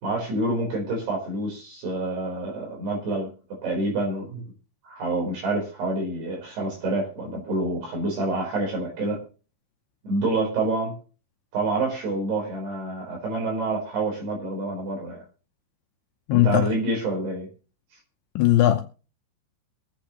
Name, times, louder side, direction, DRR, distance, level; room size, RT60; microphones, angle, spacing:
voice 1, 0.0-4.4 4.8-9.2 10.0-11.0 11.5-15.2 16.3-17.5, right 2 dB, 55° right, 6.0 m, -27 dB
voice 2, 16.3-16.7 18.4-18.8, left 13 dB, 75° left, 3.0 m, -19 dB
23.5 x 8.5 x 3.0 m
omnidirectional pair, 5.7 m